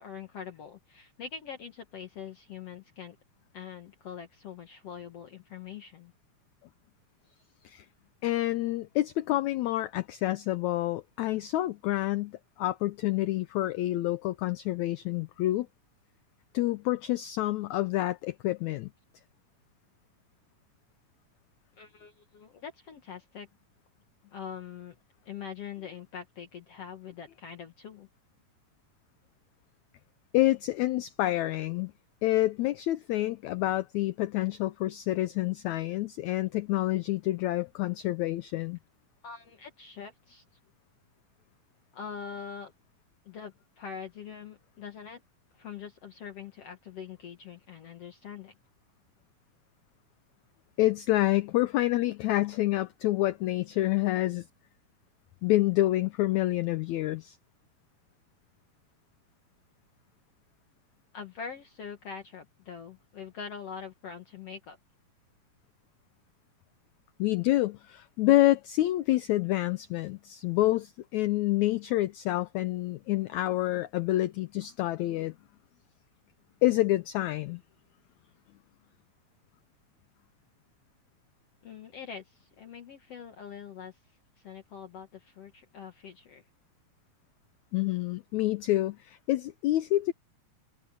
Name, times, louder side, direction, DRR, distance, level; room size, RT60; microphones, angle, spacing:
voice 1, 0.0-3.2 3.5-6.1 21.8-23.5 24.3-25.0 25.3-28.1 39.2-40.4 41.9-42.7 43.3-45.2 45.5-48.5 61.1-64.8 81.6-84.0 84.4-86.4, left 7 dB, 55° left, 2.0 m, -43 dB
voice 2, 8.2-15.7 16.5-18.9 30.3-31.9 32.2-38.8 50.8-54.5 55.4-57.4 67.2-75.3 76.6-77.6 87.7-90.1, left 16 dB, 85° left, 1.6 m, -28 dB
omnidirectional pair, 4.0 m